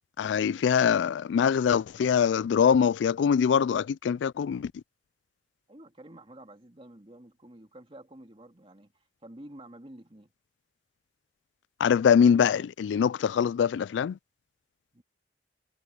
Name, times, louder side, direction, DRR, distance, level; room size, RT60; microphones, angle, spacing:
voice 1, 0.2-4.8 11.8-14.2, left 7 dB, 80° left, 0.3 m, -23 dB
voice 2, 5.7-10.3 14.9-15.0, right 1 dB, 30° right, 2.3 m, -49 dB
head